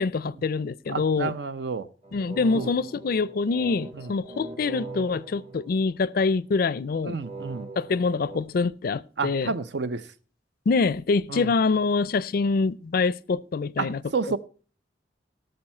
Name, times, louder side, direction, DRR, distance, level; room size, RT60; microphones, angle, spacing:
voice 1, 0.0-1.3 2.1-7.2 7.8-9.5 10.7-14.0, left 4 dB, 55° left, 0.4 m, -25 dB
voice 2, 0.9-1.9 2.5-2.7 3.9-4.1 7.0-7.7 9.2-10.1 11.3-11.5 13.8-14.4, right 4 dB, 70° right, 0.7 m, -30 dB
sound 1, 2.0-6.3 7.2-8.4, right 3 dB, 35° right, 1.4 m, -41 dB
17.5 x 6.6 x 4.3 m
head